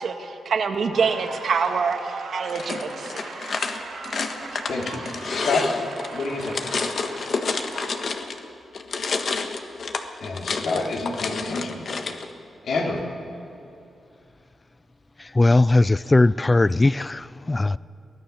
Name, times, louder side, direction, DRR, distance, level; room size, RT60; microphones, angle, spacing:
voice 1, 0.0-3.1, right 5 dB, 65° right, 5 dB, 1.8 m, -25 dB
sound 1, 0.9-8.2, right 4 dB, 85° right, 4.0 m, -38 dB
sound 2, 2.5-8.4 8.7-12.3, left 4 dB, 55° left, 1.4 m, -29 dB
voice 2, 4.7-5.7 6.1-6.6 10.2-11.8 12.6-13.0, left 3 dB, 75° left, 0 dB, 3.5 m, -28 dB
voice 3, 15.2-17.8, left 2 dB, 20° left, 19 dB, 0.4 m, -19 dB
23.0 x 17.0 x 7.1 m, 2.8 s
cardioid pair, 95°, 0 cm